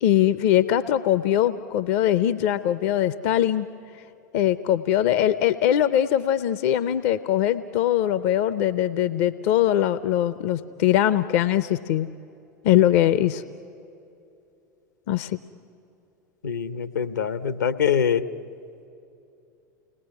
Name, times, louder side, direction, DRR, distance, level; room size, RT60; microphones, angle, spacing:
voice 1, 0.0-3.7 4.3-12.1 12.6-13.4 15.1-15.4, left 11 dB, 50° left, 14 dB, 0.6 m, -21 dB
voice 2, 16.4-18.3, left 7 dB, 75° left, 12 dB, 0.9 m, -24 dB
29.5 x 20.0 x 9.6 m, 2.7 s
figure-of-eight pair, 85°, 10 cm